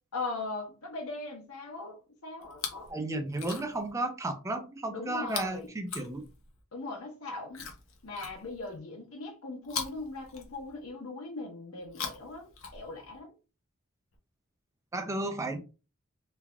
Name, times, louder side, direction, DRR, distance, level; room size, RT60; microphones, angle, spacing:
voice 1, 0.1-2.9 4.9-5.7 6.7-7.7 8.0-13.3, left 3 dB, 90° left, 1.0 m, -39 dB
Chewing mastication, 2.4-2.9 3.3-3.9 5.2-6.6 7.5-8.8 9.6-10.9 11.8-13.2 14.1-14.2, left 6 dB, 70° left, 0.7 m, -41 dB
voice 2, 2.9-6.2 14.9-15.6, right 2 dB, 15° right, 0.4 m, -33 dB
3.2 x 2.4 x 2.3 m
head